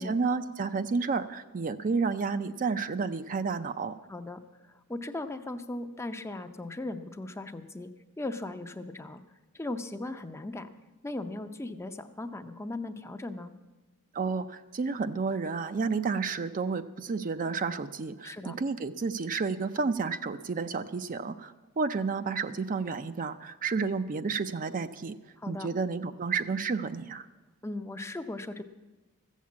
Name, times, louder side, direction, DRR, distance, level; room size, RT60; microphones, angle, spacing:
voice 1, 0.0-4.0 14.1-25.1 25.5-27.3, right 4 dB, 35° right, 10 dB, 0.4 m, -31 dB
voice 2, 4.1-7.9 8.2-9.2 9.5-10.7 11.0-13.5 18.2-18.6 25.4-25.7 27.6-28.6, left 2 dB, 10° left, 8 dB, 0.5 m, -38 dB
14.5 x 7.3 x 8.5 m, 1.2 s
head